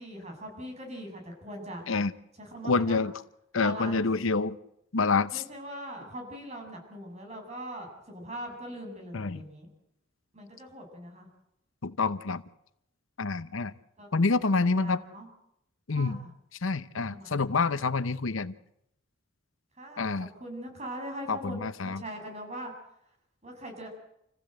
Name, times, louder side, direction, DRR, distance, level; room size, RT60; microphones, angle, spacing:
voice 1, 0.0-1.8 2.4-3.0 3.6-4.1 5.3-9.7 10.3-11.3 14.0-15.3 15.9-16.3 17.1-17.8 19.8-22.7 23.4-23.9, right 1 dB, 35° right, 2 dB, 7.4 m, -41 dB
voice 2, 2.6-3.1 3.5-4.6 4.9-5.4 9.1-9.4 11.8-12.4 13.2-13.7 14.1-15.0 15.9-16.2 16.6-18.5 20.0-20.3 21.3-22.0, left 4 dB, 75° left, 14 dB, 0.9 m, -27 dB
28.5 x 15.5 x 7.9 m, 0.81 s
head